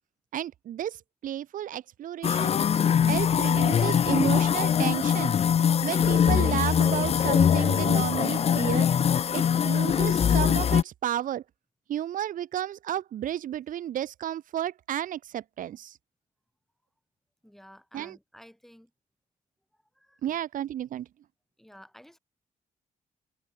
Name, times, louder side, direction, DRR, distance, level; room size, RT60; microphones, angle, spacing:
voice 1, 0.3-2.6 3.1-5.3 5.8-8.9 9.3-11.4 11.9-16.0 17.9-18.2 20.2-21.1, right 11 dB, 70° right, 2.0 m, -32 dB
sound 1, 2.2-10.8, left 8 dB, 45° left, 1.2 m, -23 dB
voice 2, 17.4-18.9 20.0-20.2 21.6-22.2, equal, ahead, 7.2 m, -52 dB
cardioid pair, 130°, 14 cm